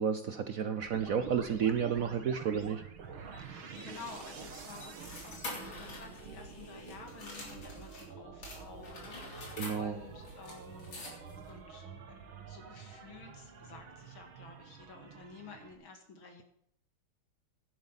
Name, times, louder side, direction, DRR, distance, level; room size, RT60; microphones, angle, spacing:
voice 1, 0.0-2.8 3.1-3.3 9.6-10.0, right 7 dB, 65° right, 10 dB, 0.8 m, -32 dB
sound 1, 0.8-15.7, right 5 dB, 90° right, 2.3 m, -48 dB
sound 2, 3.3-8.1 8.4-11.5, left 2 dB, 75° left, 4.3 m, -47 dB
voice 2, 3.4-11.1 11.5-11.9 12.5-16.4, left 4 dB, 90° left, 4 dB, 2.9 m, -51 dB
11.0 x 11.0 x 5.7 m, 0.67 s
omnidirectional pair, 2.2 m